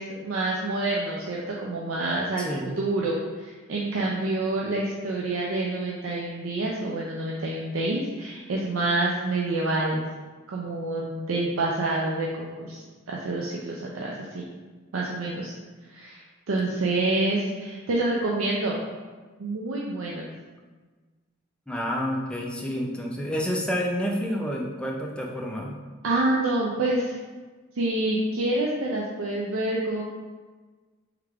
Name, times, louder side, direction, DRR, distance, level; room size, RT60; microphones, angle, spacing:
voice 1, 0.0-10.0 10.5-12.8 13.1-14.4 14.9-15.5 15.9-18.8 19.4-20.2 26.0-27.2 27.8-30.0, right 2 dB, 90° right, -3 dB, 0.5 m, -27 dB
voice 2, 2.4-2.8 21.7-25.8, equal, 5° left, -1 dB, 0.4 m, -29 dB
3.5 x 3.3 x 3.5 m, 1.4 s
head